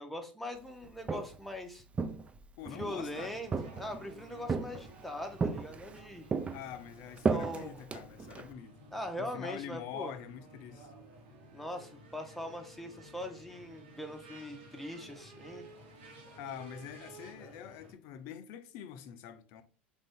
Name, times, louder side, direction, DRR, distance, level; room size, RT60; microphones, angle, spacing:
voice 1, 0.0-1.8 2.7-6.3 7.3-7.8 8.9-10.1 11.5-15.6 17.4-17.5, left 1 dB, ahead, 0.7 m, -41 dB
Walk footsteps, 0.8-1.5 1.9-3.0 3.5-4.1 4.5-5.0 5.4-6.0 6.3-8.5, right 4 dB, 20° right, 0.3 m, -34 dB
voice 2, 2.6-3.3 6.5-8.7 9.2-10.9 16.4-19.6, left 9 dB, 55° left, 0.5 m, -45 dB
sound 1, 2.9-17.9, right 2 dB, 70° right, 1.2 m, -54 dB
3.5 x 2.6 x 3.5 m
hypercardioid pair, 80°, 6 cm